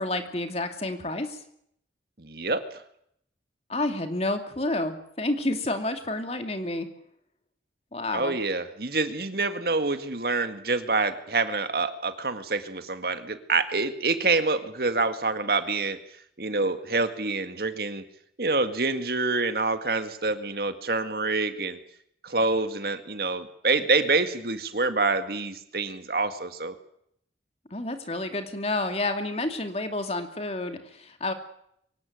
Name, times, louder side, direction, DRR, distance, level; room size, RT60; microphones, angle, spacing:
voice 1, 0.0-1.4 3.7-6.9 7.9-8.4 27.7-31.3, left 2 dB, 35° left, 7 dB, 2.5 m, -29 dB
voice 2, 2.2-2.8 8.1-16.0 16.4-18.0 18.4-21.8 22.2-26.8, right 3 dB, 55° right, 10 dB, 1.9 m, -26 dB
24.0 x 17.0 x 9.4 m, 0.71 s
head